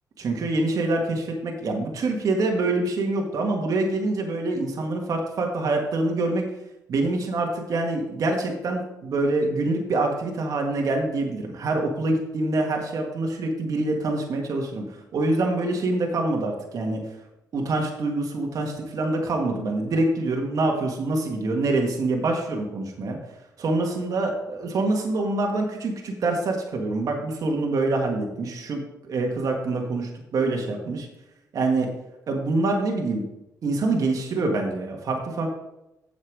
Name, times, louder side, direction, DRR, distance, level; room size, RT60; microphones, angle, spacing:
voice 1, 0.2-6.4 6.9-14.8 15.1-17.0 17.5-23.2 23.6-31.1 31.5-31.9 32.3-33.2 33.6-35.5, right 2 dB, 65° right, 1 dB, 1.8 m, -25 dB
7.8 x 7.2 x 4.8 m, 0.91 s
cardioid pair, 80°, 7 cm